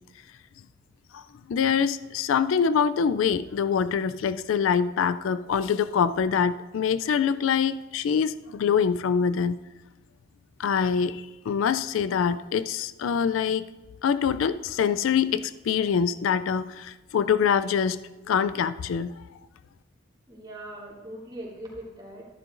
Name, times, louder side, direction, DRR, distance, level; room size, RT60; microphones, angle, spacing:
voice 1, 1.5-9.6 10.6-13.7 14.0-18.0 18.3-19.1, left 7 dB, 75° left, 13 dB, 0.3 m, -24 dB
voice 2, 20.3-22.3, right 1 dB, 25° right, -5 dB, 2.9 m, -40 dB
13.0 x 10.5 x 2.5 m, 1.1 s
head